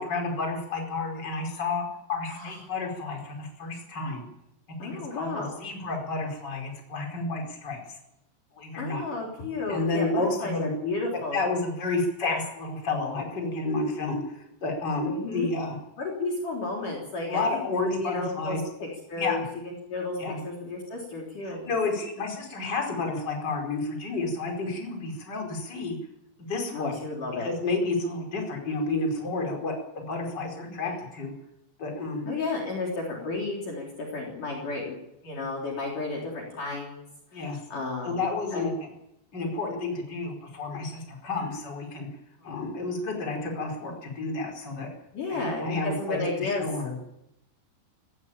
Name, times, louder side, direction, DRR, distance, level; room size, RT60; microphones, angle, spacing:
voice 1, 0.0-4.2 4.8-7.8 8.6-9.0 9.7-10.7 11.3-15.8 17.3-18.6 19.2-19.4 20.2-20.4 21.5-26.0 26.4-26.9 27.4-31.3 31.8-32.3 37.3-37.6 38.0-38.7 39.3-42.1 42.4-44.9 45.3-46.9, left 3 dB, 25° left, 1 dB, 5.0 m, -30 dB
voice 2, 4.8-5.6 8.8-11.5 15.0-15.5 16.0-17.7 17.9-21.6 26.7-27.5 30.8-31.0 32.3-35.0 35.2-37.0 37.3-38.2 38.5-38.7 42.4-42.5 45.1-46.7, left 3 dB, 45° left, -1 dB, 4.9 m, -33 dB
19.5 x 16.5 x 9.0 m, 0.83 s
omnidirectional pair, 5.2 m